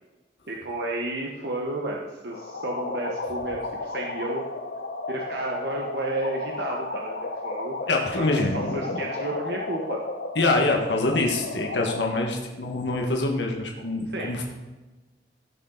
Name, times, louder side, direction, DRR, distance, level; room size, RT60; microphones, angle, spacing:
voice 1, 0.5-4.4 5.1-7.9 8.2-10.0 14.1-14.3, right 2 dB, 70° right, -1 dB, 1.2 m, -32 dB
sound 1, 2.3-12.3, left 3 dB, 70° left, 0.9 m, -33 dB
voice 2, 7.9-8.8 10.3-14.4, left 2 dB, 90° left, 1 dB, 1.6 m, -25 dB
16.5 x 6.7 x 4.0 m, 1.2 s
head